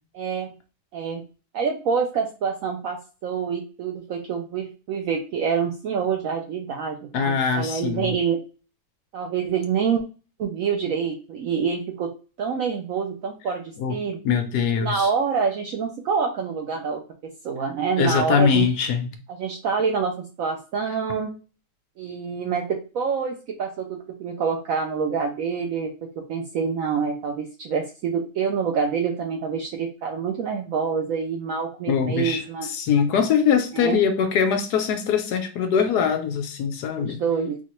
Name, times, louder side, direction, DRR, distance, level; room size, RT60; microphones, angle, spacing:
voice 1, 0.1-0.5 0.9-1.2 1.5-8.4 9.1-10.0 10.4-12.1 12.4-14.2 14.8-18.7 19.3-21.3 22.0-32.7 33.7-34.0 36.9-37.6, right 6 dB, 70° right, 0.8 m, -26 dB
voice 2, 7.1-8.1 13.8-14.0 14.2-15.1 18.0-19.1 31.9-37.2, left 7 dB, 70° left, 1.1 m, -22 dB
4.2 x 2.4 x 3.0 m
omnidirectional pair, 1.9 m